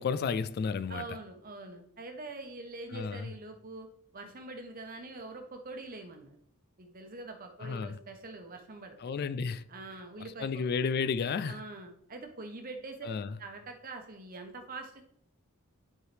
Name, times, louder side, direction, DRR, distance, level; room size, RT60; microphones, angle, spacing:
voice 1, 0.0-1.0 2.9-3.3 7.6-8.0 9.0-9.6 10.4-11.6 13.0-13.3, left 5 dB, 45° left, 0.3 m, -32 dB
voice 2, 0.9-3.9 4.1-6.3 6.8-9.2 9.7-10.6 11.5-13.1 13.4-15.0, right 3 dB, 40° right, 1.0 m, -44 dB
10.5 x 4.7 x 3.4 m
head